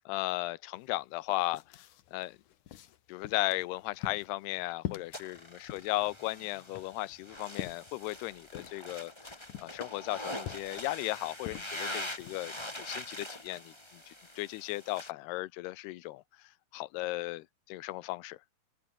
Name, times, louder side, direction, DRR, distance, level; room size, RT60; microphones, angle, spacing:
voice 1, 0.1-1.6 2.1-2.4 3.1-18.4, left 18 dB, 90° left, 2.9 m, -36 dB
sound 1, 0.8-0.9 1.2-12.7, left 12 dB, 60° left, 2.5 m, -46 dB
sound 2, 5.1-15.1, left 1 dB, 5° left, 3.1 m, -43 dB
open air
omnidirectional pair, 4.5 m